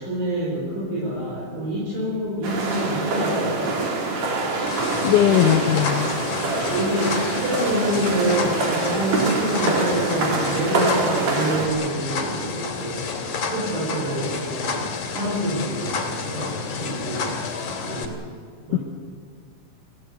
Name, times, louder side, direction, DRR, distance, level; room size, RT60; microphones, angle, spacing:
voice 1, 0.0-3.7 5.2-5.4 6.7-13.0 13.4-17.4 17.9-18.2 18.7-18.8, right 1 dB, 70° right, -6 dB, 6.9 m, -27 dB
sound 1, 2.4-11.7, right 3 dB, 50° right, 3.9 m, -25 dB
sound 2, 4.7-18.1, left 4 dB, 55° left, 3.5 m, -30 dB
voice 2, 5.0-6.1 18.7-18.8, left 11 dB, 75° left, 13 dB, 1.9 m, -19 dB
26.0 x 16.5 x 8.2 m, 2.1 s
omnidirectional pair, 4.3 m